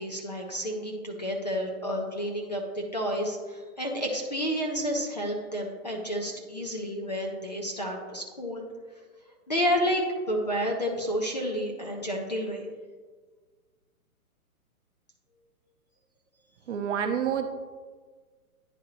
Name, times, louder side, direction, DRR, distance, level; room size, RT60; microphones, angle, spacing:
voice 1, 0.0-8.6 9.5-12.6, equal, 30° left, 1 dB, 0.4 m, -30 dB
voice 2, 16.7-17.5, right 8 dB, 50° right, 5 dB, 0.7 m, -28 dB
10.0 x 3.7 x 2.9 m, 1.5 s
hypercardioid pair, 160°, 45 cm